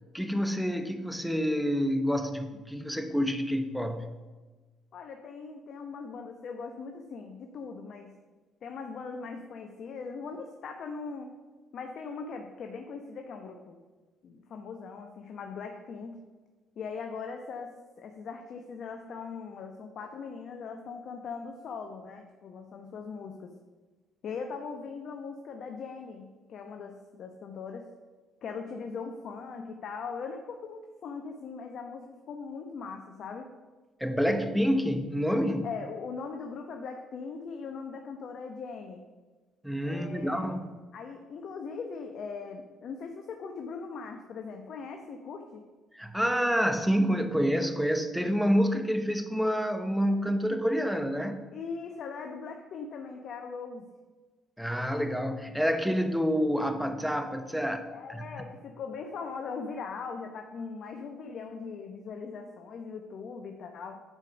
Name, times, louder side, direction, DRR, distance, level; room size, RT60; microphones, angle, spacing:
voice 1, 0.1-4.1 34.0-35.7 39.6-40.7 45.9-51.4 54.6-58.4, equal, ahead, 8 dB, 1.1 m, -28 dB
voice 2, 4.9-8.1 8.6-11.3 11.7-13.8 14.2-16.2 16.8-23.5 24.2-27.9 28.4-33.5 35.6-39.0 39.8-40.5 40.9-45.6 51.5-53.9 55.9-56.0 57.9-64.0, left 5 dB, 60° left, 4 dB, 1.0 m, -40 dB
9.6 x 5.1 x 7.0 m, 1.3 s
supercardioid pair, 75°, 0 cm